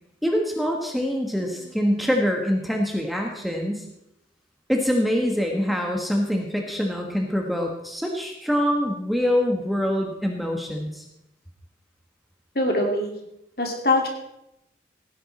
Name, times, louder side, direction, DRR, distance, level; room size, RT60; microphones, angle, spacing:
voice 1, 0.2-3.9 4.7-11.0, equal, ahead, 1 dB, 1.3 m, -24 dB
voice 2, 12.5-13.2 13.6-14.1, left 2 dB, 55° left, 2 dB, 2.7 m, -23 dB
17.0 x 10.0 x 4.2 m, 0.84 s
head